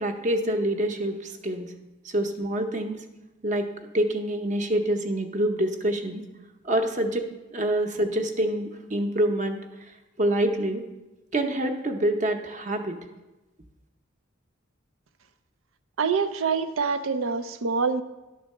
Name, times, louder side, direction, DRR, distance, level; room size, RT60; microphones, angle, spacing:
voice 1, 0.0-1.7 2.0-3.0 3.4-6.2 6.6-9.6 10.2-10.8 11.3-13.0, right 1 dB, 40° right, 5 dB, 0.8 m, -26 dB
voice 2, 16.0-18.0, right 5 dB, 85° right, 11 dB, 0.6 m, -25 dB
11.5 x 4.0 x 6.5 m, 1.1 s
head